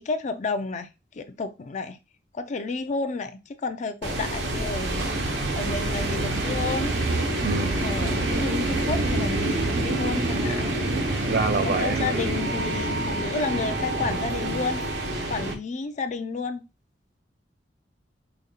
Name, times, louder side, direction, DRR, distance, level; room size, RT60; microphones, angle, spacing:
voice 1, 0.0-2.0 2.3-5.3 5.5-6.9 7.8-10.8 11.6-14.9 15.3-16.6, left 4 dB, 40° left, 0.4 m, -31 dB
sound 1, 4.0-15.5, right 2 dB, 85° right, 0.9 m, -27 dB
voice 2, 7.4-7.9 11.3-12.3, right 3 dB, 50° right, 0.6 m, -26 dB
5.0 x 2.3 x 2.7 m
head